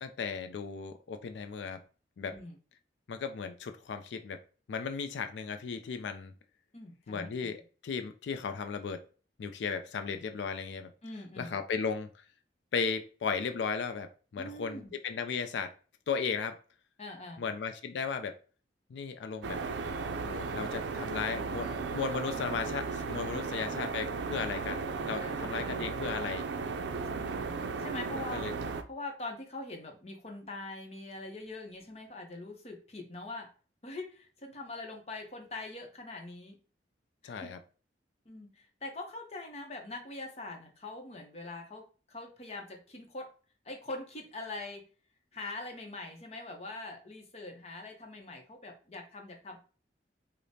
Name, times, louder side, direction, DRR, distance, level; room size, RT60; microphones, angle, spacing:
voice 1, 0.0-1.8 2.2-2.3 3.1-4.4 4.7-6.3 7.1-9.0 9.4-10.9 11.4-12.1 12.7-15.7 16.1-16.6 17.4-18.4 18.9-19.6 20.1-21.7 21.9-26.5 28.3-28.5 37.2-37.6, left 5 dB, 85° left, 0.4 m, -35 dB
voice 2, 6.7-7.5 11.0-11.5 14.4-14.9 17.0-17.4 21.0-22.2 23.3-23.5 25.2-25.9 27.1-28.4 28.9-33.5 33.8-36.6 37.2-37.5 38.3-41.8 42.1-43.3 43.6-44.8 45.3-49.6, left 2 dB, 35° left, 0.7 m, -43 dB
sound 1, 19.4-28.8, right 4 dB, 85° right, 0.4 m, -35 dB
4.9 x 2.1 x 2.7 m
head